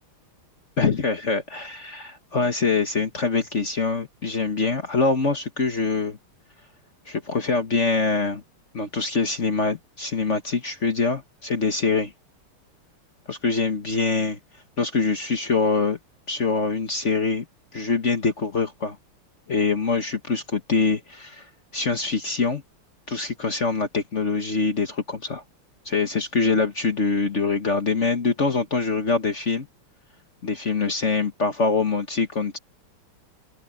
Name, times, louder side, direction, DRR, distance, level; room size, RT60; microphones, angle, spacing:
voice 1, 0.8-6.2 7.0-8.4 8.7-12.1 13.3-14.4 14.8-16.0 16.3-17.4 17.7-19.0 19.5-22.6 23.1-25.4 25.8-29.7 30.4-32.6, left 4 dB, 40° left, 1.4 m, -24 dB
open air
omnidirectional pair, 2.4 m